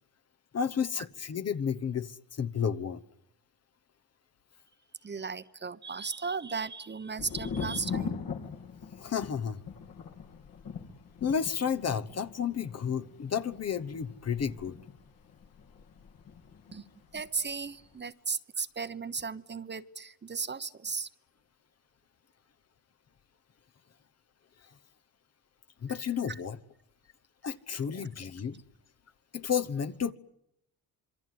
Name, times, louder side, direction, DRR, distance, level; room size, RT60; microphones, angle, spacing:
voice 1, 0.5-3.0 9.0-9.6 11.2-14.8 24.6-24.7 25.8-26.6 27.4-28.6 29.3-30.1, left 7 dB, 40° left, 1.2 m, -32 dB
voice 2, 5.0-8.2 16.7-16.8 17.1-21.1 26.3-26.4 27.9-28.1, right 5 dB, 30° right, 1.1 m, -36 dB
Thunder, 7.2-16.8 17.1-17.8, left 6 dB, 65° left, 3.1 m, -41 dB
26.5 x 23.0 x 9.5 m
cardioid pair, 95°, 38 cm